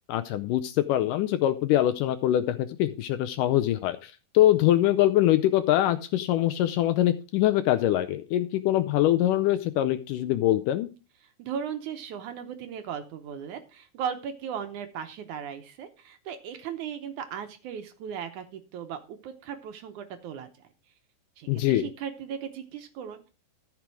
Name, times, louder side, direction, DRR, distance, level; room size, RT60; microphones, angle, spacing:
voice 1, 0.1-10.9 21.5-21.9, left 13 dB, 80° left, 11 dB, 2.0 m, -23 dB
voice 2, 11.2-20.5 21.4-23.3, right 8 dB, 70° right, 8 dB, 2.1 m, -37 dB
14.0 x 6.1 x 4.7 m, 0.31 s
omnidirectional pair, 4.2 m